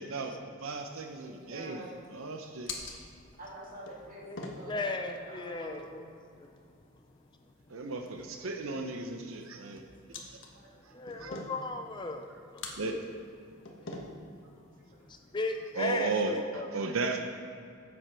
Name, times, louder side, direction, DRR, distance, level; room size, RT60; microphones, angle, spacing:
voice 1, 0.0-2.8 7.7-9.8 10.3-10.4 10.8-11.4 12.3-12.4 12.8-13.0 15.7-17.2, right 3 dB, 75° right, 4 dB, 0.7 m, -35 dB
sound 1, 0.7-16.0, left 3 dB, 60° left, 1.3 m, -48 dB
voice 2, 1.5-2.0 3.4-6.1 8.7-8.9 9.6-9.7 10.2-11.4 12.0-12.1 13.6-13.9 14.4-14.5 14.8-15.1, right 1 dB, 40° right, -3 dB, 2.3 m, -49 dB
voice 3, 4.3-6.1 6.4-6.5 10.9-12.7 15.1-16.7, left 3 dB, 20° left, 5 dB, 0.5 m, -36 dB
12.5 x 7.9 x 4.4 m, 2.5 s
head